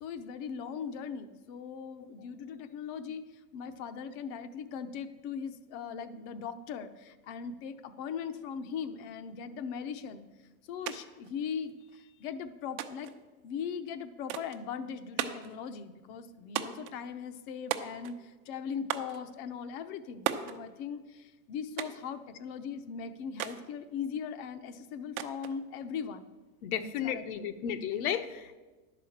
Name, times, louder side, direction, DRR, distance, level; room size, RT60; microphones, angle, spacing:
voice 1, 0.0-3.2 3.5-10.2 10.7-13.1 13.4-26.3 27.0-27.4, left 7 dB, 40° left, 11 dB, 0.7 m, -39 dB
sound 1, 10.9-11.0 11.2-12.0 12.8-13.2 14.3-14.6 15.2-15.6 16.6-17.0 17.7-18.2 18.9-19.2 20.3-20.6 21.8-22.1 23.4-23.6 25.2-25.6, right 11 dB, 70° right, 0.9 m, -35 dB
voice 2, 26.6-28.6, left 9 dB, 70° left, 10 dB, 1.0 m, -33 dB
11.0 x 5.0 x 7.1 m, 1.2 s
supercardioid pair, 150°, 45 cm